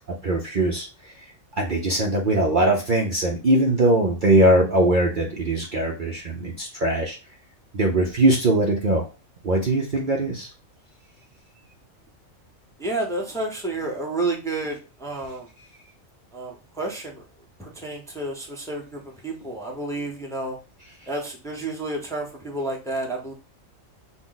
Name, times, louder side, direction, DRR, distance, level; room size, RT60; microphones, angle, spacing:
voice 1, 0.2-0.9 1.2-1.3 1.6-7.2 7.7-9.0 9.4-10.5, right 1 dB, 50° right, 0 dB, 0.7 m, -21 dB
voice 2, 12.8-15.5 16.3-17.2 17.6-20.6 21.1-23.3, right 2 dB, 5° left, 0 dB, 0.7 m, -30 dB
6.1 x 2.1 x 3.8 m, 0.31 s
omnidirectional pair, 1.4 m